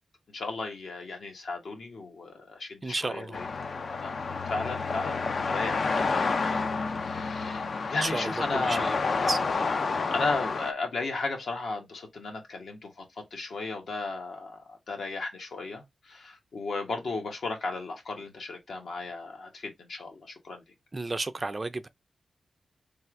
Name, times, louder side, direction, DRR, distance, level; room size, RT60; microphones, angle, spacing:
voice 1, 0.3-4.2 4.4-6.5 7.0-8.8 9.6-12.9 13.3-20.6, left 3 dB, 75° left, 1.4 m, -35 dB
voice 2, 2.8-3.4 8.0-9.0 9.3-9.4 20.9-21.9, right 2 dB, 30° right, 0.4 m, -32 dB
sound 1, 3.3-10.7, left 4 dB, 55° left, 0.5 m, -29 dB
3.5 x 2.4 x 4.5 m
wide cardioid pair, 95°, 0 cm